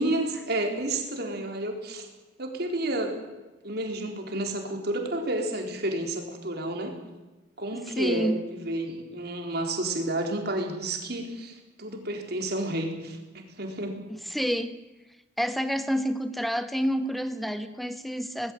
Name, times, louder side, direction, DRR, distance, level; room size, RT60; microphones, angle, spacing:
voice 1, 0.0-2.1 2.4-3.2 3.6-6.9 7.6-8.3 8.6-14.0, right 1 dB, 60° right, 3 dB, 4.2 m, -30 dB
voice 2, 7.7-8.4 14.1-14.8 15.4-18.5, equal, ahead, 10 dB, 1.3 m, -29 dB
19.5 x 16.0 x 9.3 m, 1.1 s
head